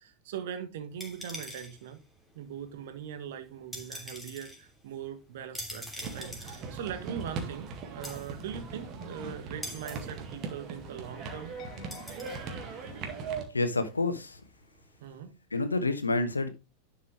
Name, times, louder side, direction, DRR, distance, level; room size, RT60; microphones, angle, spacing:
voice 1, 0.0-2.0 2.3-11.6 15.0-15.4, right 9 dB, 55° right, 1.6 m, -41 dB
sound 1, 0.9-15.2, left 1 dB, ahead, 3.0 m, -47 dB
sound 2, 6.0-13.4, right 5 dB, 35° right, 2.0 m, -40 dB
sound 3, 8.0-13.5, left 7 dB, 30° left, 2.4 m, -52 dB
voice 2, 13.5-14.4 15.5-16.5, left 2 dB, 80° left, 1.3 m, -28 dB
11.0 x 5.5 x 3.2 m
figure-of-eight pair, 90°, 0 cm